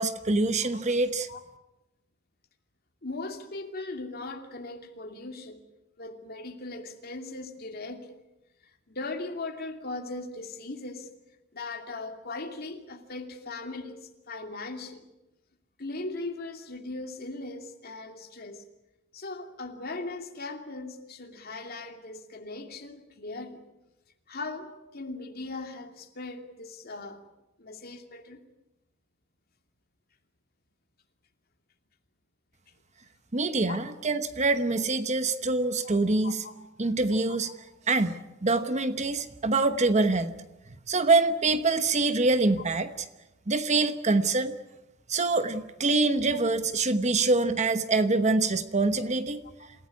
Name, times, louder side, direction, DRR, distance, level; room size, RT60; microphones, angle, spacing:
voice 1, 0.0-1.3 33.3-36.4 36.8-37.5 37.9-40.3 40.9-42.9 43.5-44.6 45.1-49.4, right 3 dB, 35° right, 10 dB, 1.0 m, -25 dB
voice 2, 3.0-5.6 6.0-8.1 8.9-11.1 11.5-15.0 15.8-18.6 19.1-23.6 24.3-27.2 27.6-28.4 33.7-33.8 35.8-36.6 37.4-37.5 46.3-46.4 49.6-49.7, left 2 dB, 50° left, 4 dB, 2.7 m, -39 dB
27.5 x 16.5 x 9.7 m, 0.99 s
head